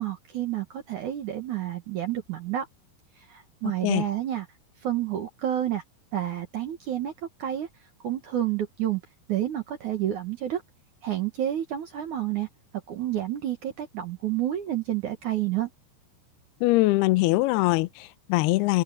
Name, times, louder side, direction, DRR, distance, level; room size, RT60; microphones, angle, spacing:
voice 1, 0.0-2.7 3.2-4.5 4.8-5.8 6.1-7.1 7.4-7.7 8.0-9.0 9.3-10.6 11.0-12.5 12.9-15.7, right 12 dB, 70° right, 1.9 m, -29 dB
voice 2, 16.6-18.8, left 20 dB, 80° left, 2.3 m, -22 dB
open air
omnidirectional pair, 5.5 m